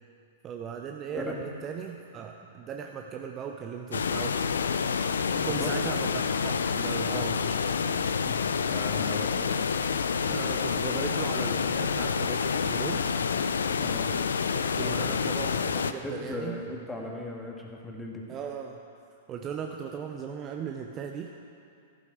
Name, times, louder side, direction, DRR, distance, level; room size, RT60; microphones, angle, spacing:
voice 1, 0.4-4.6 5.3-8.1 10.3-13.0 14.5-16.6 18.3-18.8 19.3-21.3, right 7 dB, 30° right, 3 dB, 0.8 m, -38 dB
sound 1, 3.9-15.9, left 6 dB, 80° left, 0.5 m, -28 dB
voice 2, 5.3-5.8 8.3-9.5 10.3-10.4 13.6-14.1 14.7-15.1 15.8-18.2, left 2 dB, 10° left, -1 dB, 2.2 m, -38 dB
14.5 x 12.5 x 4.9 m, 2.5 s
hypercardioid pair, 105°, 0 cm